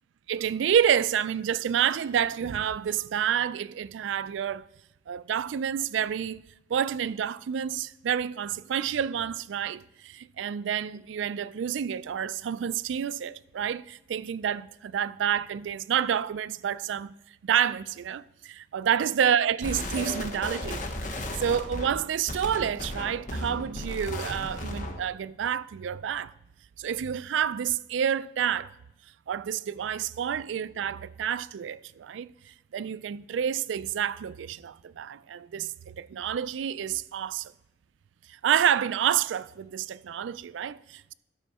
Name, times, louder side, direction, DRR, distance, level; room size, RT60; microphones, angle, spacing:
voice 1, 0.3-4.6 5.1-6.4 6.7-17.1 17.4-26.3 26.8-28.8 29.3-37.5 38.3-41.1, right 8 dB, 85° right, 0.3 m, -29 dB
sound 1, 19.6-25.1, left 1 dB, 45° left, 1.0 m, -35 dB
12.5 x 6.2 x 4.2 m
head